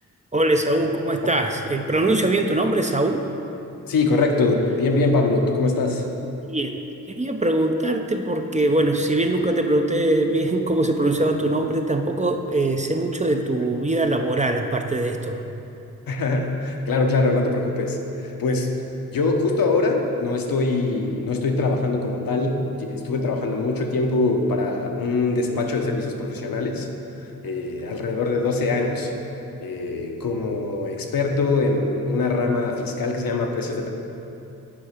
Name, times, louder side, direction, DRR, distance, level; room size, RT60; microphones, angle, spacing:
voice 1, 0.3-3.3 6.4-6.8 7.1-15.4, right 1 dB, 20° right, 4 dB, 0.5 m, -22 dB
voice 2, 3.8-6.1 16.1-18.7 19.1-26.9 27.4-29.1 29.6-33.9, left 3 dB, 70° left, 2 dB, 0.9 m, -23 dB
6.9 x 4.9 x 5.0 m, 2.9 s
supercardioid pair, 40°, 36 cm